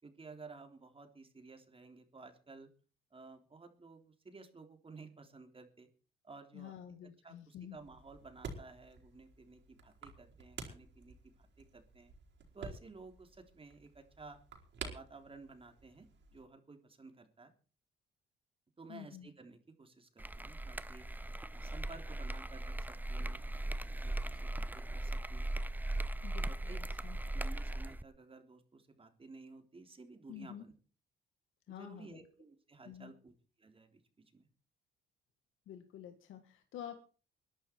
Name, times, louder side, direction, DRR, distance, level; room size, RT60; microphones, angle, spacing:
voice 1, 0.0-2.7 3.1-5.9 6.2-6.7 7.0-12.1 12.5-14.4 14.8-17.5 18.8-21.1 21.5-23.7 24.0-25.5 26.4-26.8 27.2-30.7 31.7-33.3 33.6-34.0 34.3-34.5, right 3 dB, 30° right, 6 dB, 3.4 m, -54 dB
voice 2, 6.5-7.8 18.9-19.3 26.2-27.2 30.3-30.7 31.7-32.3 32.9-33.1 35.7-37.0, left 10 dB, 85° left, 6 dB, 1.9 m, -49 dB
sound 1, 7.7-16.4, right 4 dB, 65° right, 4.9 m, -51 dB
sound 2, 20.2-28.0, right 1 dB, 10° right, 0.7 m, -38 dB
21.5 x 11.5 x 4.6 m, 0.39 s
cardioid pair, 90°, 20 cm